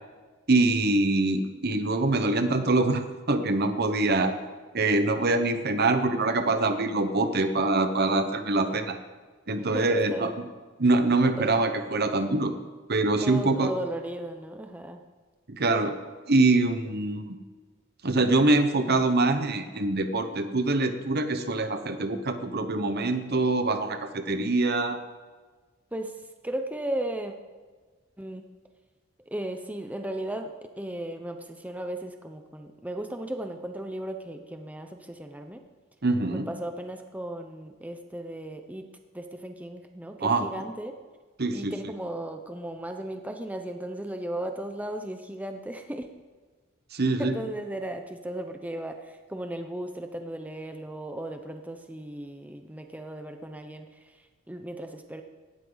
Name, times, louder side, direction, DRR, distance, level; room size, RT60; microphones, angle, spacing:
voice 1, 0.5-4.3 4.7-9.0 9.5-10.3 10.8-12.5 12.9-13.7 15.5-15.9 16.3-17.4 18.0-25.0 36.0-36.5 40.2-40.5 41.4-41.7 46.9-47.3, right 2 dB, 50° right, 8 dB, 1.1 m, -24 dB
voice 2, 9.6-10.4 11.3-11.5 13.2-15.0 25.9-27.3 28.2-28.4 29.3-35.7 36.3-38.9 39.1-40.9 41.5-46.1 47.2-55.2, right 1 dB, 10° right, 5 dB, 0.8 m, -36 dB
18.0 x 13.0 x 4.0 m, 1.4 s
head